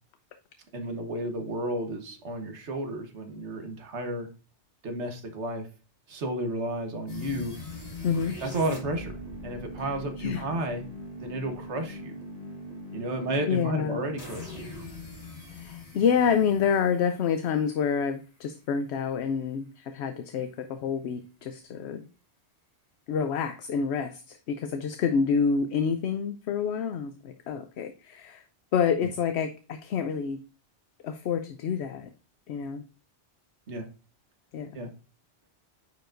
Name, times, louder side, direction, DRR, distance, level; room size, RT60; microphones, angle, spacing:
voice 1, 0.7-4.3 4.8-5.7 6.1-7.5 8.4-9.1 9.4-10.8 11.1-12.2 12.9-14.7 29.0-29.1 33.7-33.8 34.7-34.9, right 1 dB, 75° right, 5 dB, 1.4 m, -32 dB
sound 1, 7.1-18.0, left 1 dB, 35° left, 2.0 m, -41 dB
voice 2, 8.0-8.4 10.2-10.4 13.5-14.0 15.5-22.1 23.1-28.4 28.7-30.4 31.0-32.1 32.5-32.9 34.5-34.8, left 6 dB, 75° left, 9 dB, 0.9 m, -28 dB
9.4 x 4.7 x 2.5 m, 0.35 s
omnidirectional pair, 1.2 m